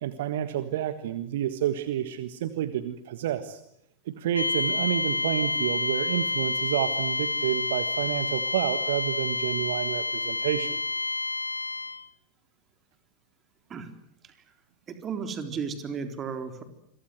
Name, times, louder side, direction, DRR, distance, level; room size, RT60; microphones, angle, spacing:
voice 1, 0.0-3.6 4.1-10.8, right 11 dB, 55° right, 11 dB, 1.5 m, -29 dB
sound 1, 4.3-12.1, left 3 dB, 80° left, 1.1 m, -29 dB
voice 2, 14.9-16.6, right 6 dB, 25° right, 7 dB, 3.7 m, -34 dB
28.5 x 23.5 x 7.9 m, 0.71 s
figure-of-eight pair, 90°, 0 cm